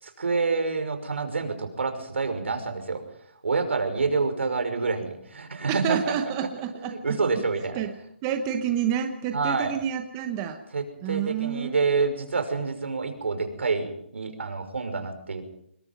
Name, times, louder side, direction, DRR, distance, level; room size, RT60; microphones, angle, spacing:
voice 1, 0.0-3.0 3.4-6.3 6.8-7.8 9.3-9.7 10.7-15.4, right 4 dB, 75° right, 6 dB, 5.8 m, -27 dB
voice 2, 5.7-7.2 7.7-7.9 8.2-10.6 11.0-11.8, right 9 dB, 15° right, 6 dB, 1.0 m, -28 dB
27.0 x 21.0 x 5.5 m, 0.70 s
hypercardioid pair, 175°, 7 cm